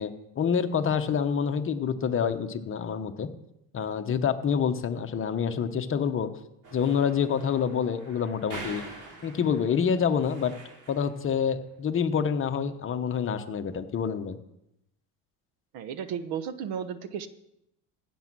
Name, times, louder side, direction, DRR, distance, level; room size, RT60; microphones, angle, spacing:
voice 1, 0.0-3.3 3.7-6.3 6.7-8.8 9.2-14.4, left 7 dB, 35° left, 8 dB, 1.0 m, -27 dB
sound 1, 6.6-11.2, right 2 dB, 50° right, 3.4 m, -45 dB
voice 2, 15.7-17.3, right 8 dB, 70° right, 12 dB, 1.1 m, -34 dB
16.0 x 6.3 x 6.1 m, 0.83 s
cardioid pair, 120°, 39 cm